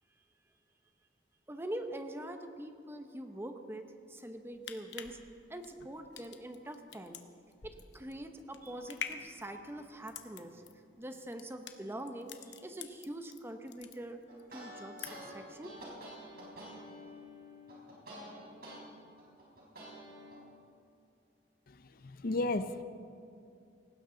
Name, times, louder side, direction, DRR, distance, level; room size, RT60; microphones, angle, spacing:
voice 1, 1.5-5.2 5.5-7.2 7.6-10.6 11.0-14.2 14.5-15.7, right 1 dB, 15° right, 6 dB, 0.8 m, -44 dB
sound 1, 4.4-13.4 13.7-14.4 14.7-15.4 15.8-15.9, left 8 dB, 70° left, 1.0 m, -46 dB
sound 2, 14.3-18.8 19.2-20.4, equal, 55° right, 4.7 m, -48 dB
voice 2, 22.0-22.8, left 2 dB, 55° left, 11 dB, 0.6 m, -33 dB
18.5 x 15.5 x 3.9 m, 2.5 s
head